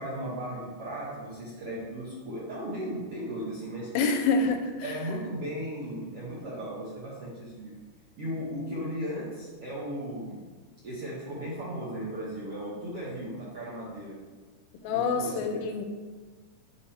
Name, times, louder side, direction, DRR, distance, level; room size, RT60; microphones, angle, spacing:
voice 1, 0.0-3.9 4.8-7.7 8.2-10.4 10.8-14.1 14.9-15.6, right 1 dB, 70° right, -6 dB, 1.4 m, -36 dB
voice 2, 3.9-4.6 14.8-15.8, left 4 dB, 85° left, 5 dB, 2.3 m, -26 dB
7.1 x 3.4 x 4.3 m, 1.4 s
omnidirectional pair, 4.1 m